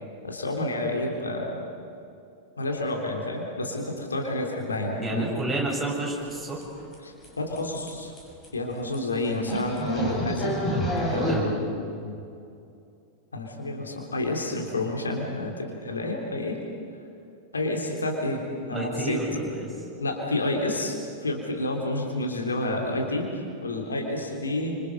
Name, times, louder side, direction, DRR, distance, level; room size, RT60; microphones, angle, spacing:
voice 1, 0.2-1.6 2.6-5.3 7.0-8.1 8.5-10.5 11.1-11.7 12.0-12.2 13.3-16.6 17.5-19.2 20.0-24.8, left 1 dB, 75° left, 1 dB, 3.3 m, -29 dB
voice 2, 5.0-6.6 11.3-11.4 18.7-19.7, right 2 dB, 5° right, -4 dB, 7.7 m, -30 dB
sound 1, 6.6-6.9 7.2-7.3 7.6-7.7 7.9-8.0 8.2-8.5 8.9-9.0 9.5-11.4, equal, 25° left, 6.4 m, -27 dB
28.5 x 26.5 x 5.4 m, 2.6 s
figure-of-eight pair, 90°, 0 cm